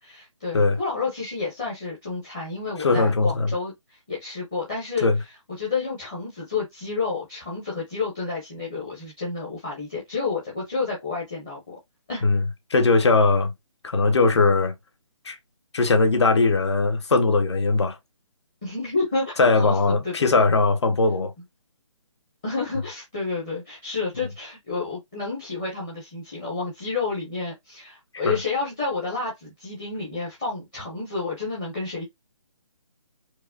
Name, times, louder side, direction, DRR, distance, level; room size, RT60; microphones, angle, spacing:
voice 1, 0.0-5.1 5.6-11.7 12.1-12.3 18.6-20.3 22.4-32.0, left 4 dB, 10° left, 0.6 m, -30 dB
voice 2, 2.8-3.5 5.0-5.2 12.2-12.4 12.7-13.5 13.8-14.7 15.2-15.4 15.7-18.0 19.4-21.3 28.2-28.4, left 3 dB, 55° left, 0.9 m, -20 dB
4.6 x 2.2 x 2.5 m
hypercardioid pair, 175°, 17 cm